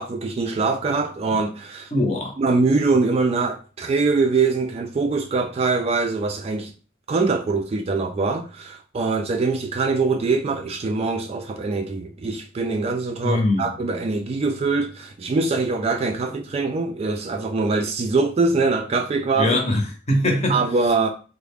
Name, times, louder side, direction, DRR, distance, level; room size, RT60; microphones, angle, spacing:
voice 1, 0.0-1.9 2.4-6.7 7.1-19.6 20.5-21.1, right 3 dB, 30° right, 0.3 m, -23 dB
voice 2, 1.9-2.3 13.2-13.7 19.4-20.6, left 1 dB, 35° left, 0.7 m, -22 dB
3.5 x 2.1 x 3.5 m
head